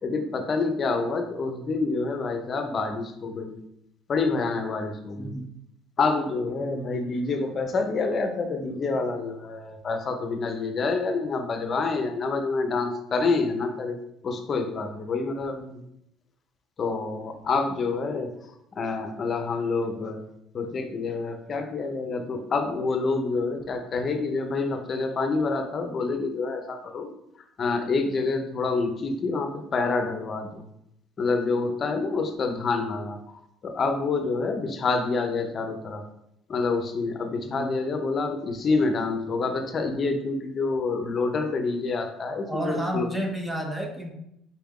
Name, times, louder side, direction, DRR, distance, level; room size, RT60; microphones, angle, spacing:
voice 1, 0.0-3.6 4.1-5.3 6.0-15.8 16.8-18.3 18.8-20.2 20.5-27.1 27.6-30.6 31.2-36.0 36.5-43.1, left 3 dB, 35° left, 6 dB, 0.7 m, -27 dB
voice 2, 42.5-44.1, right 1 dB, 10° right, 2 dB, 0.6 m, -31 dB
4.3 x 3.4 x 3.6 m, 0.78 s
cardioid pair, 115°, 0 cm